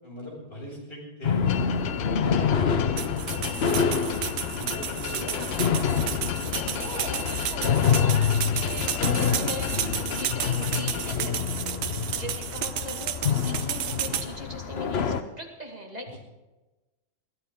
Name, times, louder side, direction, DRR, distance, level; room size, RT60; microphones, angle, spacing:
voice 1, 0.0-1.4 1.9-4.2 4.5-5.9 11.8-12.1 16.1-16.2, left 1 dB, 25° left, -4 dB, 7.1 m, -40 dB
sound 1, 1.2-15.2, left 7 dB, 90° left, 0.5 m, -27 dB
sound 2, 1.5-11.1, left 10 dB, 70° left, 1.4 m, -35 dB
sound 3, 3.0-14.3, right 10 dB, 85° right, 1.7 m, -32 dB
voice 2, 5.3-5.6 6.6-16.2, equal, 20° right, 0 dB, 2.0 m, -40 dB
23.5 x 16.0 x 3.7 m, 1.1 s
omnidirectional pair, 2.2 m